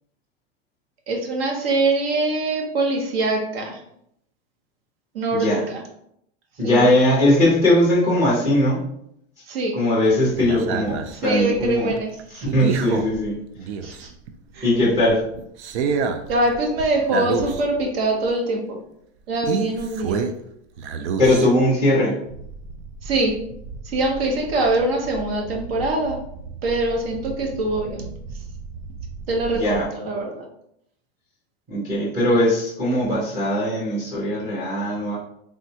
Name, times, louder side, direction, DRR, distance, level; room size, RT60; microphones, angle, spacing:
voice 1, 1.1-3.8 5.1-5.8 6.6-6.8 9.5-9.7 11.2-12.5 12.9-13.0 13.8-14.1 14.5-14.7 16.3-18.8 19.3-20.2 23.0-23.3 23.8-26.2 26.6-28.1 29.3-30.4, right 2 dB, 65° right, 1 dB, 0.9 m, -23 dB
voice 2, 5.3-5.6 6.6-8.8 9.7-11.9 12.5-13.3 14.6-15.2 21.2-22.2 29.6-29.9 31.7-35.2, left 1 dB, 10° right, -7 dB, 0.6 m, -19 dB
sound 1, 10.1-14.3 14.7-17.9 18.2-18.3 19.4-20.5 20.8-21.8 22.3-29.8, right 5 dB, 80° right, 0.5 m, -31 dB
3.5 x 2.2 x 2.7 m, 0.74 s
supercardioid pair, 180°, 33 cm